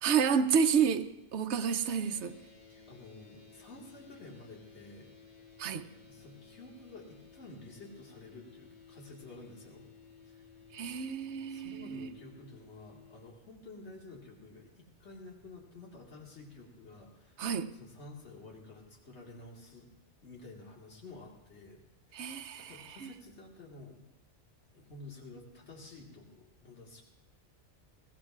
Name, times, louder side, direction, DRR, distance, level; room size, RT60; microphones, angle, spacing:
voice 1, 0.0-2.4 5.6-5.9 10.7-12.1 17.4-17.7 22.1-23.1, right 7 dB, 70° right, 8 dB, 1.0 m, -30 dB
sound 1, 1.8-13.3, left 6 dB, 55° left, 2.4 m, -57 dB
voice 2, 2.7-5.1 5.4-5.5 6.1-9.9 10.2-10.5 11.5-17.4 17.8-19.9 20.2-21.8 22.1-24.0 24.7-27.0, left 2 dB, 70° left, -1 dB, 2.2 m, -51 dB
22.0 x 16.5 x 2.4 m, 0.98 s
omnidirectional pair, 1.2 m